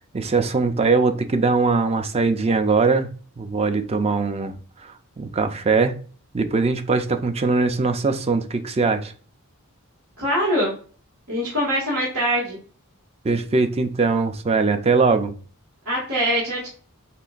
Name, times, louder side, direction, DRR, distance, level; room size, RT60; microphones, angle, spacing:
voice 1, 0.1-3.1 3.4-4.5 4.8-5.9 6.3-9.1 13.2-15.3, right 4 dB, 30° right, 0.4 m, -21 dB
voice 2, 10.2-10.8 11.3-12.6 15.8-16.7, equal, 90° right, 1.7 m, -23 dB
6.7 x 2.5 x 2.4 m
head